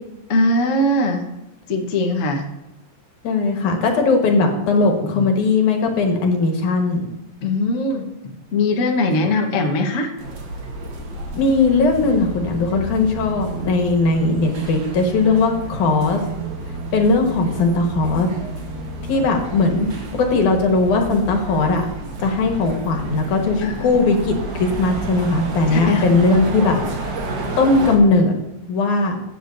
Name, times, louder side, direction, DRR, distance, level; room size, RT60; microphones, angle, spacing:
voice 1, 0.3-1.2 1.7-2.4 5.0-5.2 7.4-10.1 23.6-23.8 25.7-26.2, left 2 dB, 55° left, 2 dB, 0.8 m, -21 dB
voice 2, 3.2-7.0 9.2-9.3 11.3-16.2 16.9-18.3 19.1-19.9 20.1-21.8 22.2-26.8 27.0-27.2 27.6-28.3 28.7-29.2, left 3 dB, 90° left, 3 dB, 2.9 m, -18 dB
sound 1, 10.2-28.0, right 2 dB, 50° right, 1.5 m, -30 dB
15.5 x 7.9 x 2.6 m, 0.93 s
omnidirectional pair, 3.4 m